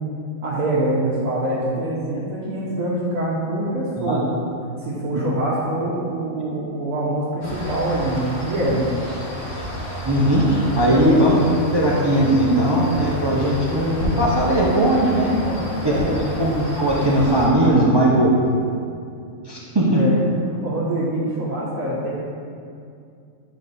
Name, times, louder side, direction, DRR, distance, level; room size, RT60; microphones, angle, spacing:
voice 1, 0.4-4.3 4.8-8.9 10.8-11.0 15.4-16.1 17.6-17.8 19.9-20.2 20.6-22.2, right 1 dB, 80° right, -8 dB, 1.3 m, -25 dB
sound 1, 7.4-17.5, equal, 55° left, 1.4 m, -30 dB
voice 2, 10.1-15.4 15.8-18.3 19.4-20.0, right 1 dB, 40° right, -5 dB, 0.3 m, -19 dB
8.2 x 3.2 x 4.0 m, 2.4 s
omnidirectional pair, 1.4 m